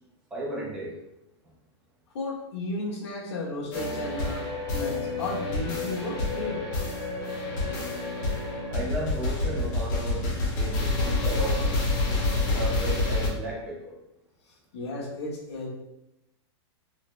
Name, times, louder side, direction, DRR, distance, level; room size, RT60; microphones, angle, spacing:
voice 1, 0.3-0.9 8.7-10.3 10.5-11.7 12.5-14.0, right 2 dB, 5° right, -3 dB, 0.3 m, -34 dB
voice 2, 2.1-6.6 14.7-15.7, left 2 dB, 70° left, -4 dB, 1.3 m, -34 dB
sound 1, 3.7-13.3, left 2 dB, 40° left, 1.0 m, -28 dB
4.1 x 2.0 x 3.1 m, 0.88 s
supercardioid pair, 180°, 15 cm